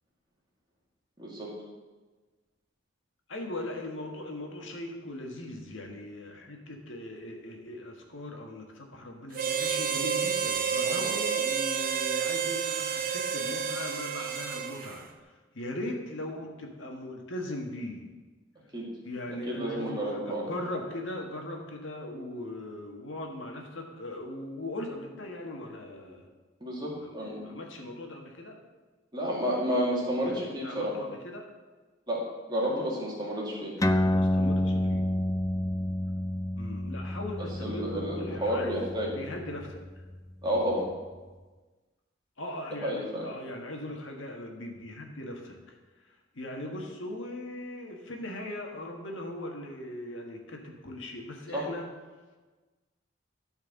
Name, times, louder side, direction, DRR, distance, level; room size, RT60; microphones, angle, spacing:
voice 1, 1.2-1.5 10.8-11.2 18.7-18.9 19.5-20.5 26.6-27.4 29.1-30.9 32.1-32.2 32.5-33.7 37.6-39.1 40.4-40.9 42.8-43.3 51.5-51.6, equal, 20° right, -4 dB, 2.3 m, -31 dB
voice 2, 3.3-18.0 19.0-26.2 26.9-28.5 30.2-31.5 33.9-35.1 36.6-38.7 39.0-39.8 42.4-51.8, left 1 dB, 75° left, 1 dB, 1.6 m, -39 dB
Harmonica, 9.3-15.0, right 6 dB, 45° right, 0.6 m, -30 dB
sound 1, 33.8-40.7, left 1 dB, 15° left, 0.3 m, -30 dB
12.5 x 4.7 x 7.0 m, 1.3 s
head